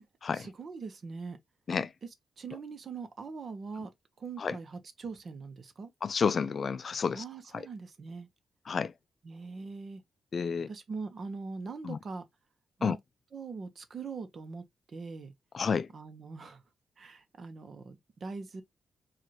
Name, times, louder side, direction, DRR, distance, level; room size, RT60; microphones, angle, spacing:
voice 1, 0.0-1.4 2.4-3.9 4.2-5.9 7.1-8.3 9.2-10.0 10.7-12.2 12.8-13.0 13.3-15.3 15.9-16.6 17.0-18.6, right 4 dB, 55° right, 0.9 m, -42 dB
voice 2, 6.0-7.2 7.5-7.7 8.7-8.9 10.3-10.7 11.8-12.0 12.8-13.0 15.5-15.9, left 5 dB, 50° left, 0.3 m, -30 dB
4.7 x 2.5 x 2.9 m
cardioid pair, 80°, 0 cm